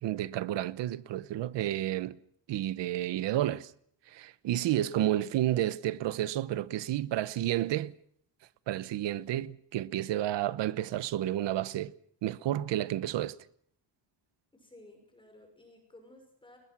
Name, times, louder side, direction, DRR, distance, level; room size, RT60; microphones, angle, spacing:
voice 1, 0.0-2.2 2.5-3.7 4.1-7.9 8.7-11.9 12.2-13.4, right 13 dB, 85° right, 1.0 m, -31 dB
voice 2, 5.1-5.5 14.5-16.6, left 1 dB, 10° left, 5.8 m, -56 dB
29.0 x 21.0 x 6.1 m
cardioid pair, 155°, 42 cm